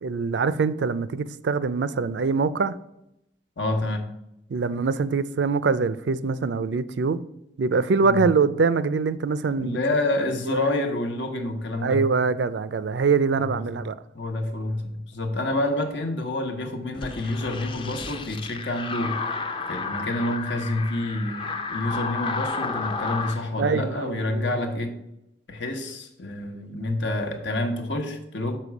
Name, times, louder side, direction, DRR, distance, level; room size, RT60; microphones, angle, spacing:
voice 1, 0.0-2.8 4.5-7.2 7.6-9.8 10.5-10.6 11.8-14.0 23.6-24.6, right 4 dB, 75° right, 0.4 m, -24 dB
voice 2, 3.6-4.0 8.0-8.2 9.5-12.0 13.4-13.8 14.1-19.2 19.7-21.4 21.7-25.0 25.5-28.6, left 1 dB, 80° left, 1.1 m, -28 dB
sound 1, 16.9-23.4, left 4 dB, 30° left, 0.5 m, -32 dB
6.8 x 4.4 x 6.0 m
head